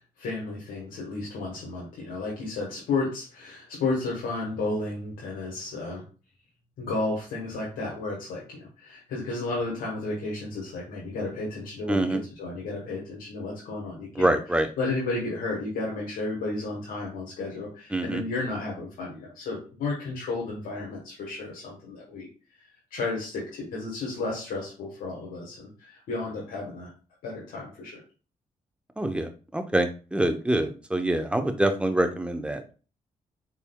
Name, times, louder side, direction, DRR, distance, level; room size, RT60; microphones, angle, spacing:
voice 1, 0.0-6.0 6.8-14.3 14.8-22.3 22.9-26.9 27.2-28.0, left 3 dB, 85° left, -4 dB, 1.1 m, -32 dB
voice 2, 11.9-12.2 14.2-14.7 17.9-18.2 29.0-32.7, right 1 dB, 10° right, 6 dB, 0.7 m, -25 dB
4.2 x 3.6 x 2.2 m, 0.35 s
supercardioid pair, 55°, 14 cm